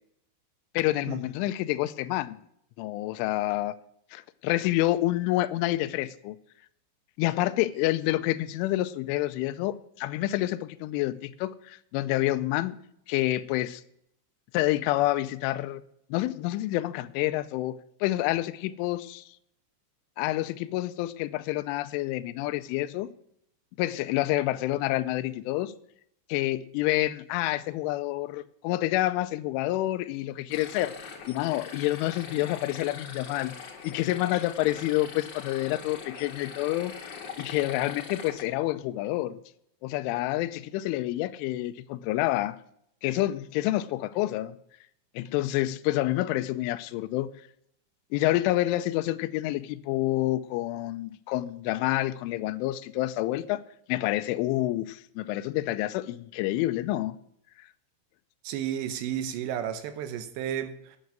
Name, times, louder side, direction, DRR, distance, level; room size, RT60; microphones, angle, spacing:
voice 1, 0.7-2.4 2.8-3.7 4.1-6.4 7.2-12.8 13.1-13.8 14.5-15.8 16.1-19.2 20.2-23.1 23.8-25.7 26.3-33.6 33.8-36.9 37.4-39.4 39.8-42.6 43.0-44.6 45.2-47.3 48.1-53.6 53.9-57.2, left 16 dB, 85° left, 12 dB, 3.0 m, -28 dB
sound 1, 30.5-38.4, left 6 dB, 55° left, 2.4 m, -42 dB
voice 2, 58.4-61.0, right 10 dB, 80° right, 10 dB, 2.7 m, -32 dB
9.4 x 7.9 x 8.7 m, 0.73 s
omnidirectional pair, 5.7 m